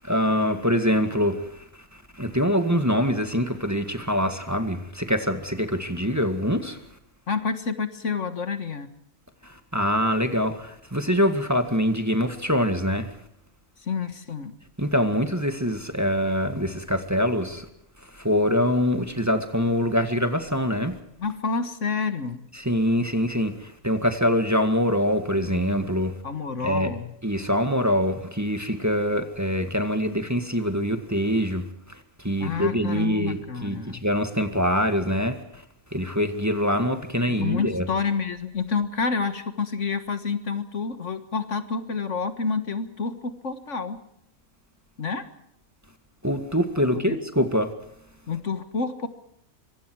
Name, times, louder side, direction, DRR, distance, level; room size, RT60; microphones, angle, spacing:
voice 1, 0.0-1.5 2.2-6.8 9.7-13.1 14.8-17.7 18.1-21.0 22.6-26.2 26.6-26.9 27.2-32.0 32.2-35.4 35.9-37.9 46.2-47.7, equal, 10° right, 1.9 m, -24 dB
voice 2, 7.3-8.9 13.8-14.6 21.2-22.5 26.2-27.1 32.4-34.0 37.3-44.0 45.0-45.3 46.9-47.2 48.3-49.1, left 5 dB, 60° left, 1.9 m, -29 dB
25.5 x 24.0 x 4.7 m
omnidirectional pair, 1.4 m